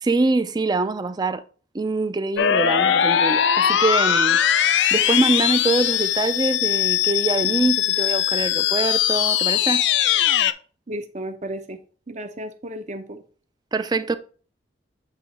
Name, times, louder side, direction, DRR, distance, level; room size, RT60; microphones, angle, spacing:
voice 1, 0.0-1.4 1.7-4.4 4.9-9.8 13.7-14.2, right 3 dB, 25° right, 0.4 m, -24 dB
sound 1, 2.4-10.5, left 10 dB, 80° left, 0.4 m, -20 dB
voice 2, 10.9-11.8 12.1-13.2, right 1 dB, 40° right, 0.8 m, -33 dB
8.3 x 3.0 x 4.0 m
head